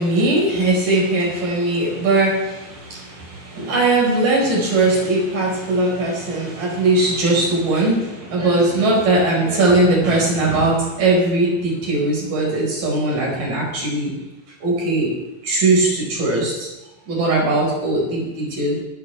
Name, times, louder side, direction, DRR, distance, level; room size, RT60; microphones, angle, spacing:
voice 1, 0.0-2.5 3.5-14.1 14.6-15.1 15.4-16.7 17.1-18.8, right 2 dB, 85° right, -3 dB, 6.8 m, -19 dB
21.0 x 12.5 x 3.5 m, 1.0 s
omnidirectional pair, 3.7 m